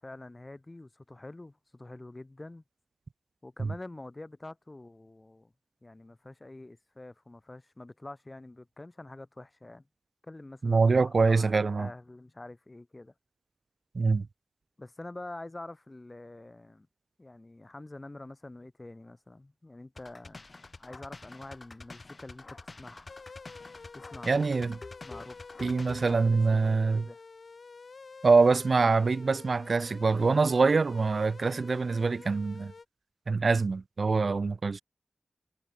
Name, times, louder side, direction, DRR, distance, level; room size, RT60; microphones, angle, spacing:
voice 1, 0.0-2.6 3.4-5.5 5.8-9.8 10.2-13.1 14.8-16.9 17.2-20.5 20.8-23.1 23.9-24.5 25.0-25.4 26.0-27.2, left 2 dB, 35° left, 3.2 m, -46 dB
voice 2, 10.6-11.9 13.9-14.3 24.3-24.8 25.6-27.1 28.2-32.7 33.3-34.8, right 4 dB, 75° right, 0.6 m, -24 dB
sound 1, 20.0-26.2, left 3 dB, 50° left, 2.5 m, -47 dB
sound 2, 23.1-32.9, left 4 dB, 75° left, 7.2 m, -49 dB
wide cardioid pair, 65°, 0 cm